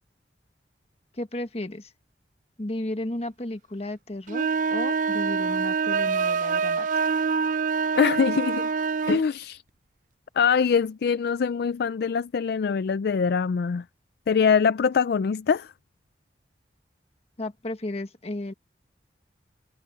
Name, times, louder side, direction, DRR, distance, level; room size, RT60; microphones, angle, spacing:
voice 1, 1.1-1.9 2.6-7.2 17.4-18.5, left 1 dB, 35° left, 1.5 m, -34 dB
sound 1, 4.3-9.2, right 5 dB, 45° right, 0.5 m, -25 dB
voice 2, 8.0-8.7 9.1-9.6 10.4-13.8 14.3-15.7, left 6 dB, 60° left, 0.4 m, -23 dB
head